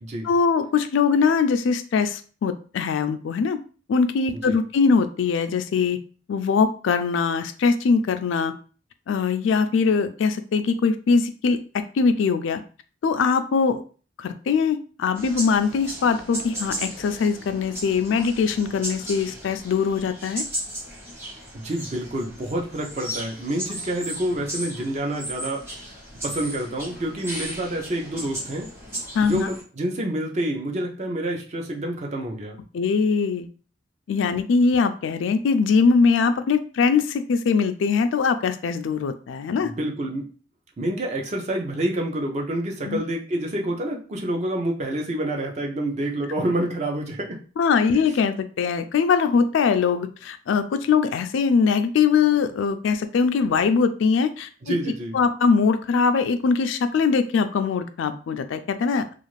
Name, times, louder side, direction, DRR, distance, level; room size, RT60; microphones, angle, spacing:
voice 1, 0.2-3.6 3.9-6.0 6.3-8.5 9.1-12.6 13.0-13.8 14.2-20.4 29.1-29.5 32.7-33.5 34.1-39.7 42.8-43.0 47.6-54.8 55.1-59.1, left 5 dB, 80° left, 9 dB, 0.3 m, -22 dB
sound 1, 15.1-29.6, right 1 dB, 15° right, 0.9 m, -36 dB
voice 2, 21.5-25.6 26.2-28.7 29.2-32.6 39.6-40.3 40.8-47.4 54.6-55.2, right 1 dB, 35° right, 1 dB, 0.5 m, -28 dB
2.4 x 2.4 x 3.1 m, 0.39 s
head